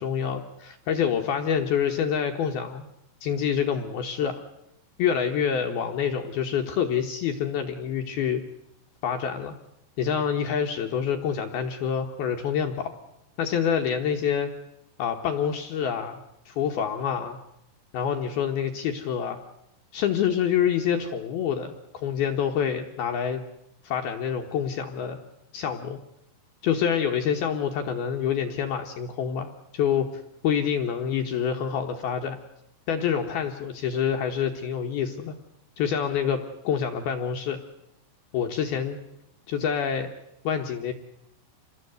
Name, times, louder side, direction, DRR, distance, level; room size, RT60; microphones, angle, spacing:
voice 1, 0.0-2.9 3.2-4.4 5.0-8.4 9.0-9.5 10.0-12.9 13.4-14.5 15.0-17.4 17.9-19.4 19.9-23.4 23.8-25.2 25.5-26.0 26.6-32.4 32.9-35.3 35.8-37.6 38.3-39.0 39.5-40.1 40.4-40.9, left 8 dB, 70° left, 4 dB, 2.6 m, -27 dB
27.0 x 20.0 x 8.0 m, 0.83 s
omnidirectional pair, 5.5 m